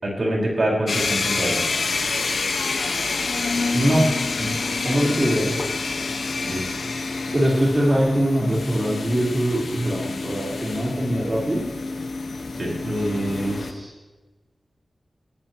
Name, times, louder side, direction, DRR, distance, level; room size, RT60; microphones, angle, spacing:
voice 1, 0.0-1.6 6.5-6.8 12.6-13.0, right 1 dB, 55° right, -2 dB, 5.1 m, -25 dB
sound 1, 0.9-13.7, left 3 dB, 85° left, 1.5 m, -27 dB
voice 2, 3.7-4.1 4.4-4.5 4.8-5.5 7.3-11.6 12.8-13.9, equal, 35° right, -5 dB, 4.3 m, -22 dB
20.5 x 14.0 x 3.1 m, 1.2 s
wide cardioid pair, 60°, 0 cm